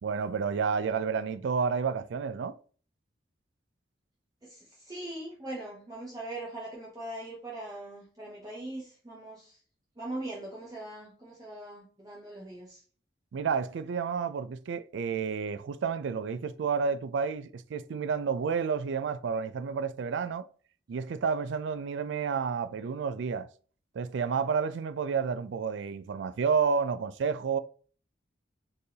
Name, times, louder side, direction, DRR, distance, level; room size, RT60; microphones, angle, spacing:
voice 1, 0.0-2.6 13.3-20.5 20.9-23.5 23.9-27.6, right 6 dB, 75° right, 0.3 m, -30 dB
voice 2, 4.4-9.6 10.0-12.8, right 1 dB, 20° right, 0.8 m, -41 dB
4.3 x 3.4 x 2.8 m
head